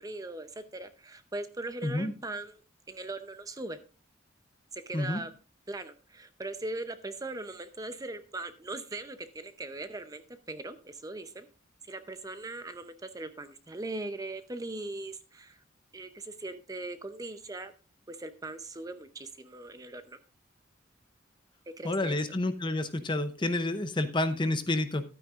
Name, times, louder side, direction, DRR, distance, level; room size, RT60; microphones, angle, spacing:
voice 1, 0.0-2.6 2.9-3.8 4.7-5.3 5.7-11.5 11.9-15.6 15.9-17.7 18.1-20.2 21.8-22.2, right 2 dB, 20° right, 10 dB, 0.6 m, -40 dB
voice 2, 21.8-25.0, left 2 dB, 25° left, 10 dB, 0.6 m, -29 dB
12.5 x 8.9 x 2.4 m, 0.34 s
head